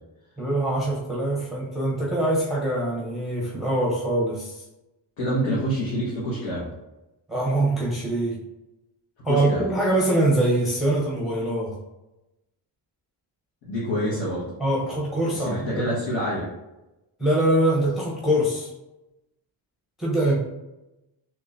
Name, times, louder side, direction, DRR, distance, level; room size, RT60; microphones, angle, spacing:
voice 1, 0.4-4.6 7.3-8.4 9.2-11.8 14.6-15.8 17.2-18.7 20.0-20.3, right 1 dB, ahead, -5 dB, 0.7 m, -23 dB
voice 2, 5.2-6.7 9.3-9.6 13.6-14.5 15.4-16.5, equal, 75° left, -8 dB, 1.3 m, -27 dB
3.7 x 3.1 x 2.5 m, 0.98 s
cardioid pair, 100°, 46 cm